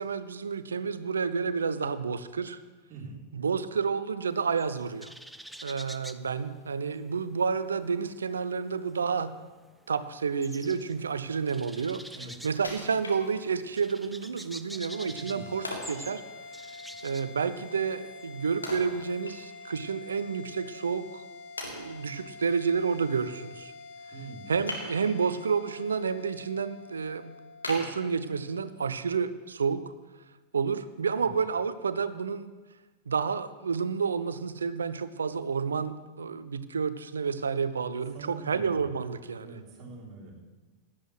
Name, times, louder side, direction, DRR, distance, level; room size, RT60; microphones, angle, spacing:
voice 1, 0.0-2.6 3.3-5.1 5.6-9.4 9.9-12.1 12.4-16.2 17.0-21.2 21.6-23.7 24.5-27.4 27.7-29.9 30.5-32.5 33.1-39.6, right 5 dB, 70° right, 14 dB, 0.5 m, -30 dB
voice 2, 2.9-3.2 12.1-12.3 15.1-15.5 24.1-24.5 31.2-31.3 38.1-38.8 39.4-40.3, right 3 dB, 35° right, -4 dB, 3.6 m, -44 dB
sound 1, 4.3-7.4 7.6-19.2, right 1 dB, ahead, 0.5 m, -47 dB
Wood, 12.6-13.8 14.2-14.3 15.6-16.1 18.6-19.7 20.1-20.2 20.9-21.0 21.6-22.2 24.6-25.4 25.9-26.3 26.7-26.8 27.6-28.7 29.1-29.2, left 2 dB, 80° left, 1.8 m, -40 dB
sound 2, 14.8-29.4, left 3 dB, 50° left, 1.4 m, -47 dB
16.5 x 11.5 x 3.2 m, 1.2 s
figure-of-eight pair, 90°, 0 cm